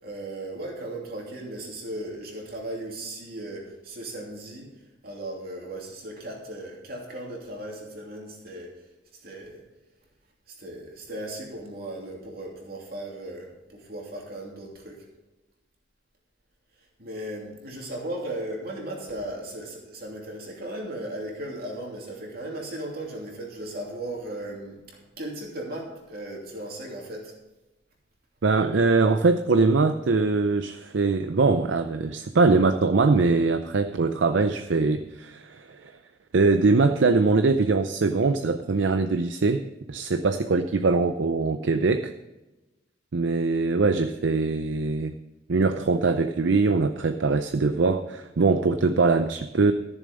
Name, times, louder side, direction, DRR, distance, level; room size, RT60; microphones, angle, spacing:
voice 1, 0.0-4.7 5.0-8.8 9.1-9.6 10.5-15.1 17.0-27.3, right 1 dB, 50° right, -1 dB, 2.9 m, -37 dB
voice 2, 28.4-35.9 36.3-39.6 39.9-42.1 43.1-45.1 45.5-49.7, right 3 dB, 70° right, 8 dB, 0.5 m, -22 dB
14.0 x 7.1 x 5.3 m, 1.0 s
head